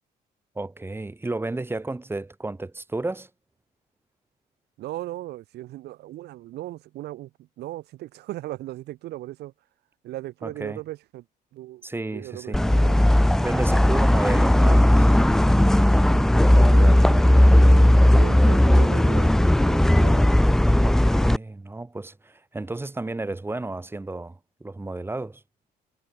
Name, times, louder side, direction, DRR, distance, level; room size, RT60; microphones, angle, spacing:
voice 1, 0.5-3.3 10.4-10.8 11.8-12.6 13.4-15.0 20.8-25.4, right 2 dB, 15° right, 4.5 m, -32 dB
voice 2, 4.8-7.3 7.6-9.5 10.0-11.2 11.5-11.9 12.1-13.0 14.6-15.0 16.1-20.4, right 15 dB, 75° right, 6.3 m, -37 dB
sound 1, 12.5-21.4, left 1 dB, 5° left, 0.3 m, -17 dB
cardioid pair, 110°, 17 cm